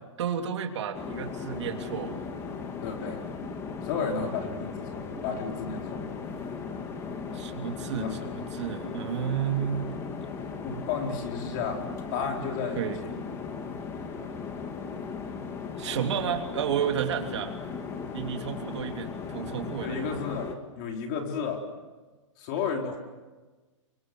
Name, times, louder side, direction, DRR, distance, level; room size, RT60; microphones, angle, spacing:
voice 1, 0.2-2.2 7.3-9.9 12.7-13.0 15.8-17.5 18.1-20.1, right 8 dB, 60° right, 4 dB, 3.2 m, -31 dB
sound 1, 0.9-20.6, left 5 dB, 15° left, 2.0 m, -37 dB
voice 2, 2.8-3.2 3.8-6.1 7.9-8.3 10.6-11.8 12.1-13.2 19.8-21.7 22.4-23.0, left 5 dB, 35° left, 2 dB, 4.3 m, -32 dB
29.5 x 24.5 x 7.9 m, 1.3 s
hypercardioid pair, 160°, 17 cm